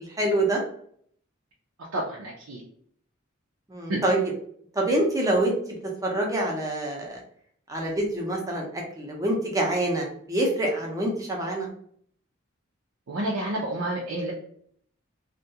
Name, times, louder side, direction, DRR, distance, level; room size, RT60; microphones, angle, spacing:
voice 1, 0.2-0.6 3.7-4.2 4.7-5.6 6.0-7.2 7.7-11.7, right 1 dB, 15° right, -1 dB, 0.6 m, -26 dB
voice 2, 1.9-2.6 3.9-4.0 13.1-14.3, right 1 dB, 85° right, -4 dB, 0.6 m, -29 dB
2.3 x 2.2 x 2.7 m, 0.62 s
head